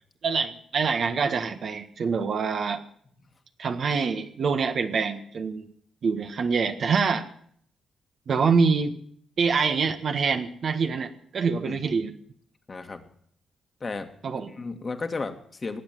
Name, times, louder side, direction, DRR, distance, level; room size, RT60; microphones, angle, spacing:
voice 1, 0.2-2.8 3.6-5.7 6.0-7.3 8.3-8.9 9.4-12.1 14.2-14.5, right 5 dB, 60° right, 7 dB, 1.6 m, -25 dB
voice 2, 12.7-13.1 13.8-14.1 14.6-15.8, left 3 dB, 40° left, 6 dB, 2.0 m, -33 dB
18.5 x 8.2 x 9.3 m, 0.63 s
hypercardioid pair, 45°, 0 cm